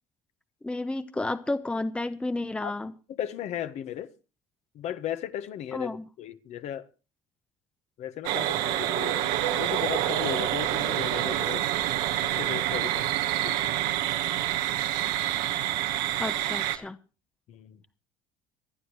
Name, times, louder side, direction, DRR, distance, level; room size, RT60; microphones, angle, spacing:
voice 1, 0.6-2.9 5.7-6.0 16.2-17.0, left 2 dB, 10° left, 0.8 m, -31 dB
voice 2, 3.1-4.1 4.7-6.9 8.0-11.6 12.2-13.0 13.4-13.7 17.5-17.8, left 10 dB, 60° left, 1.4 m, -36 dB
sound 1, 8.2-16.8, right 13 dB, 85° right, 1.5 m, -27 dB
26.5 x 9.4 x 3.2 m
cardioid pair, 120°, 13 cm